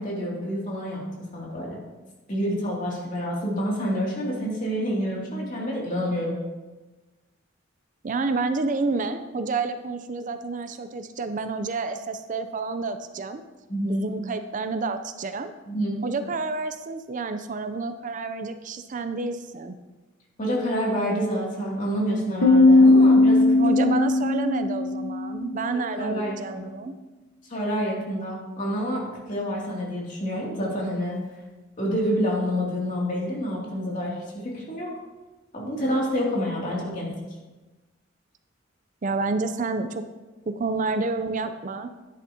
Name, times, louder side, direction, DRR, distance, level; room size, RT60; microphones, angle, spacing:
voice 1, 0.0-1.8 2.3-6.4 13.7-14.0 15.7-16.0 20.4-23.4 25.7-26.7 27.5-31.2 31.8-34.9 35.5-37.1, equal, 40° left, -3 dB, 2.6 m, -28 dB
voice 2, 8.0-13.4 13.9-15.5 16.0-19.8 23.6-26.9 39.0-40.0 40.5-41.9, right 3 dB, 40° right, 9 dB, 0.5 m, -29 dB
Piano, 22.4-25.8, left 2 dB, 75° left, 1.2 m, -18 dB
10.5 x 10.0 x 2.8 m, 1.2 s
head